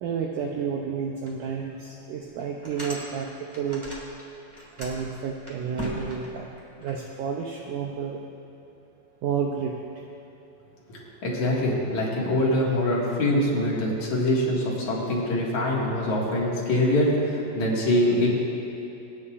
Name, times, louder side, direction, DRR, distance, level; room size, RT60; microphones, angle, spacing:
voice 1, 0.0-3.3 3.6-3.8 4.8-6.5 6.8-8.2 9.2-9.8, right 6 dB, 80° right, 0 dB, 1.8 m, -30 dB
sound 1, 1.2-1.3 1.8-1.9 2.4-4.2 4.5-6.9, equal, 10° right, 1.4 m, -38 dB
voice 2, 10.9-18.3, left 1 dB, 55° left, -5 dB, 3.0 m, -24 dB
26.5 x 9.7 x 2.5 m, 2.9 s
omnidirectional pair, 4.3 m